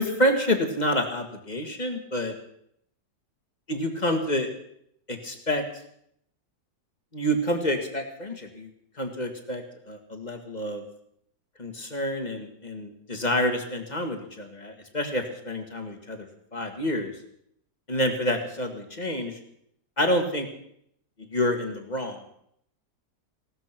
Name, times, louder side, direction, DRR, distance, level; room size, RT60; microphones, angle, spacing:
voice 1, 0.0-2.4 3.7-4.5 5.1-5.6 7.1-8.7 9.0-10.8 11.6-16.3 16.5-17.1 17.9-19.4 20.0-20.5 21.2-22.2, equal, 25° left, 5 dB, 2.0 m, -28 dB
17.5 x 13.5 x 6.0 m, 0.71 s
omnidirectional pair, 1.8 m